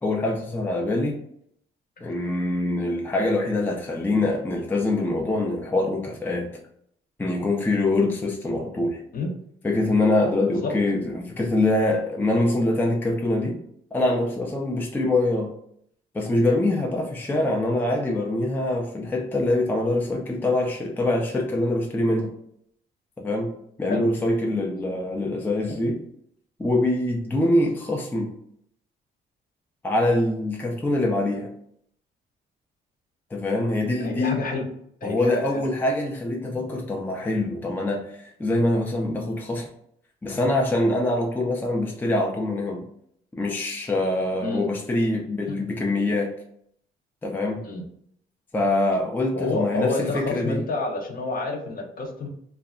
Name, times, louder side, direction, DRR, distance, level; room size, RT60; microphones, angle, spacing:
voice 1, 0.0-1.2 2.0-6.5 7.2-9.0 9.6-13.6 13.9-15.5 16.1-22.3 23.2-23.5 23.8-26.0 26.6-28.3 29.8-31.5 33.3-34.4 35.0-39.7 40.2-42.9 43.3-46.3 47.2-47.7 48.5-50.6, left 2 dB, 10° left, 0 dB, 0.4 m, -24 dB
voice 2, 34.0-34.7 35.0-35.6 44.4-44.7 45.5-45.6 47.6-47.8 49.3-52.3, left 3 dB, 45° left, 2 dB, 0.6 m, -29 dB
2.2 x 2.1 x 3.5 m, 0.69 s
cardioid pair, 90°, 20 cm